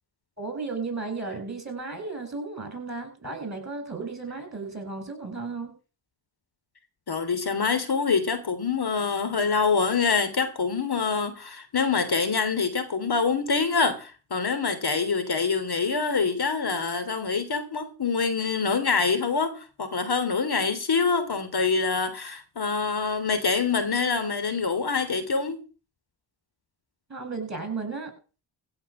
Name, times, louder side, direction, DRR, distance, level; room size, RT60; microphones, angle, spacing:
voice 1, 0.4-5.8 27.1-28.1, right 4 dB, 35° right, 7.6 m, -34 dB
voice 2, 7.1-25.6, left 5 dB, 50° left, 3.3 m, -25 dB
16.0 x 6.5 x 7.2 m
cardioid pair, 65°, 48 cm